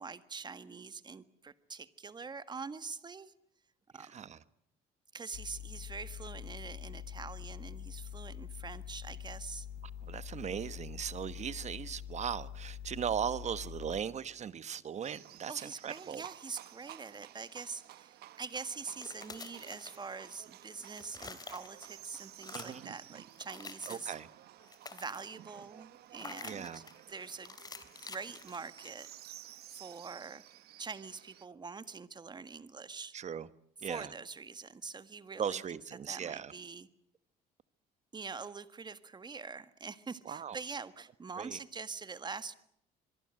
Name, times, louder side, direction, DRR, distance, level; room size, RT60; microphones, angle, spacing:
voice 1, 0.0-3.3 3.9-4.1 5.1-9.7 15.5-24.1 24.9-27.6 28.0-29.1 29.7-30.4 30.8-33.2 33.8-36.9 38.1-42.5, right 5 dB, 25° right, 1.7 m, -44 dB
voice 2, 4.0-4.4 10.0-16.2 22.5-22.8 23.9-24.3 26.4-26.8 33.1-33.5 33.8-34.1 35.4-36.5 40.3-40.6 41.4-41.6, right 8 dB, 40° right, 1.4 m, -38 dB
sound 1, 5.3-14.0, left 10 dB, 85° left, 2.4 m, -45 dB
Livestock farm animals working animals, 15.0-31.5, right 14 dB, 70° right, 1.1 m, -54 dB
sound 2, 18.8-20.4 20.7-22.0 22.3-22.9 23.3-24.3 24.6-25.4 26.2-27.0 27.4-29.1, left 4 dB, 25° left, 3.1 m, -49 dB
25.5 x 23.0 x 7.7 m
cardioid pair, 110°, 17 cm